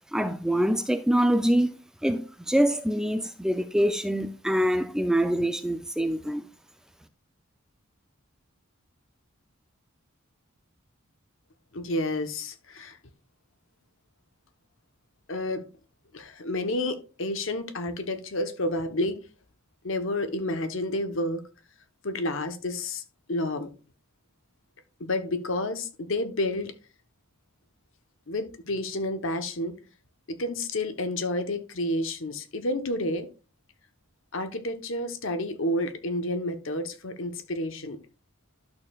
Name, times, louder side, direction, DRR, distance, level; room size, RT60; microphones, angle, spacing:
voice 1, 0.1-1.8 2.0-6.4, equal, 5° right, 0.4 m, -25 dB
voice 2, 11.7-13.0 15.3-15.6 16.1-19.2 19.8-21.4 22.0-23.0 23.3-23.7 25.0-26.7 28.3-29.8 30.3-33.3 34.3-38.0, left 1 dB, 60° left, 1.0 m, -30 dB
12.0 x 6.5 x 2.4 m
head